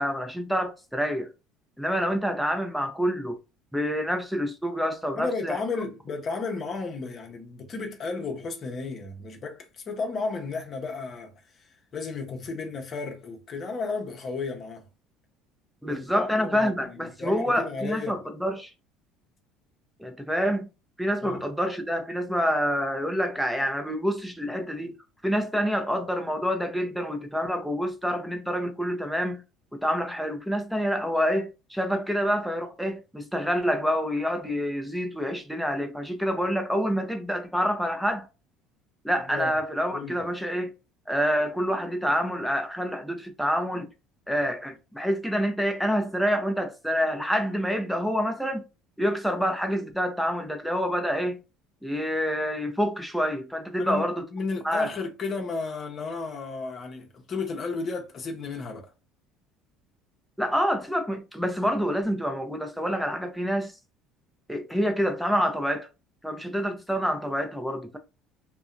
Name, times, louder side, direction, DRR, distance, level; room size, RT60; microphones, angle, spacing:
voice 1, 0.0-1.3 1.8-3.4 3.7-5.6 15.8-18.7 20.0-20.7 21.0-25.0 25.2-29.4 29.7-38.3 39.0-40.7 41.1-43.9 44.3-48.6 49.0-51.4 51.8-54.3 54.6-54.9 60.4-63.7 64.5-65.9 66.2-68.0, equal, ahead, 0.6 m, -27 dB
voice 2, 5.1-11.7 11.9-14.9 15.9-18.2 21.2-21.4 39.3-39.5 39.9-40.2 53.8-54.0 54.3-58.9, left 4 dB, 40° left, 0.8 m, -33 dB
2.6 x 2.2 x 2.5 m
supercardioid pair, 90°, 0 cm